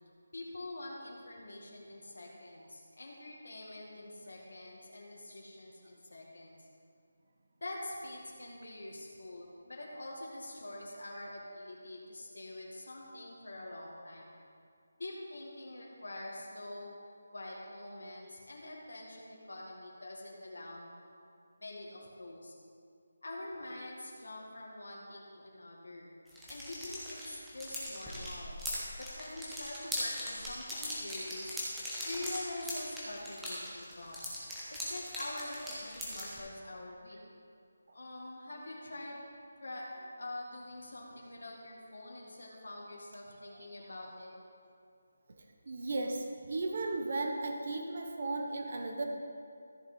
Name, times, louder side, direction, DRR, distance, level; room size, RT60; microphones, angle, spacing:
voice 1, 0.3-6.7 7.6-14.3 15.0-17.0 17.3-21.0 21.6-22.5 23.2-26.1 26.5-28.6 28.9-31.6 32.0-34.3 34.7-37.2 37.9-39.2 39.6-39.9 40.2-44.3, left 1 dB, 90° left, -3 dB, 1.9 m, -45 dB
sound 1, 26.3-36.4, equal, ahead, 0.9 m, -40 dB
voice 2, 45.7-49.1, right 2 dB, 40° right, 3 dB, 0.9 m, -35 dB
14.0 x 6.6 x 4.2 m, 2.4 s
figure-of-eight pair, 180°, 0 cm